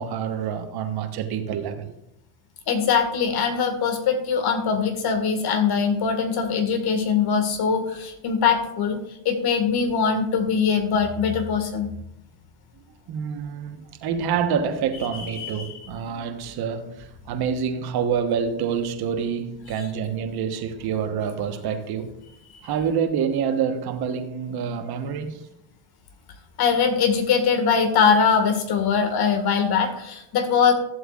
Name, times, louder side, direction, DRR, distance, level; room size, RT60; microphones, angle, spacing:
voice 1, 0.0-2.0 13.1-22.1 22.6-25.5, right 7 dB, 55° right, 1.3 m, -27 dB
voice 2, 2.7-9.0 9.3-11.9 15.1-15.7 19.8-19.9 22.5-22.6 26.6-30.7, left 6 dB, 55° left, 1.9 m, -22 dB
14.0 x 7.7 x 2.5 m
supercardioid pair, 100°, 45 cm